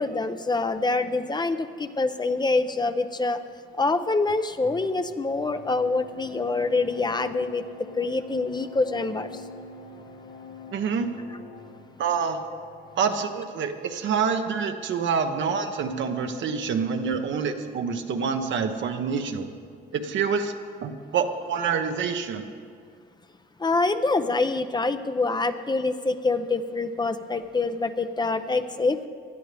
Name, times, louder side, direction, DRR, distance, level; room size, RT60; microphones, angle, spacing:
voice 1, 0.0-3.4 3.8-7.6 8.0-9.3 23.6-29.1, left 3 dB, 20° left, 10 dB, 0.6 m, -25 dB
sound 1, 4.6-13.1, left 1 dB, 75° left, 2.2 m, -45 dB
voice 2, 10.7-11.1 12.0-12.4 13.0-19.5 19.9-20.5 20.8-22.5, right 6 dB, 70° right, 6 dB, 1.1 m, -27 dB
19.0 x 12.5 x 3.4 m, 2.3 s
cardioid pair, 90°, 20 cm